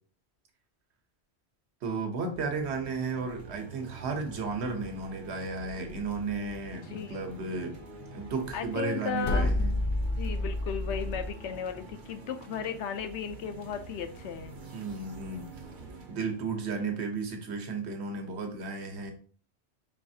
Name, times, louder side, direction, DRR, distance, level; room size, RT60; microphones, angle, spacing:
voice 1, 1.8-7.8 8.1-9.8 14.7-15.5 16.1-19.1, right 4 dB, 75° right, 5 dB, 1.1 m, -34 dB
sound 1, 2.3-17.7, right 3 dB, 50° right, 0.8 m, -47 dB
voice 2, 6.9-7.3 8.5-9.7 10.2-14.6, left 7 dB, 80° left, 8 dB, 0.9 m, -35 dB
sound 2, 9.2-11.3, left 1 dB, 50° left, 0.7 m, -29 dB
4.7 x 3.1 x 2.7 m, 0.43 s
omnidirectional pair, 1.1 m